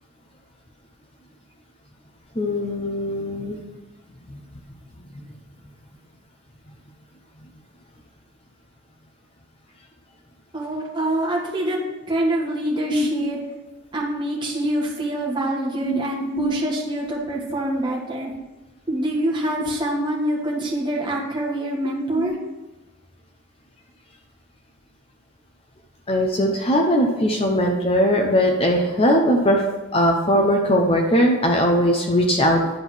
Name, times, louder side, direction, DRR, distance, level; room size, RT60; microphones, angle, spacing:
voice 1, 2.4-3.6 4.3-4.4 12.9-13.2 15.8-16.0 16.3-16.5 22.2-22.3 26.1-29.7 29.9-32.6, equal, 25° left, 1 dB, 0.7 m, -20 dB
voice 2, 10.5-11.8 12.1-13.4 13.9-18.3 18.9-22.3, right 1 dB, 20° right, -3 dB, 1.4 m, -25 dB
10.0 x 3.7 x 6.2 m, 1.1 s
head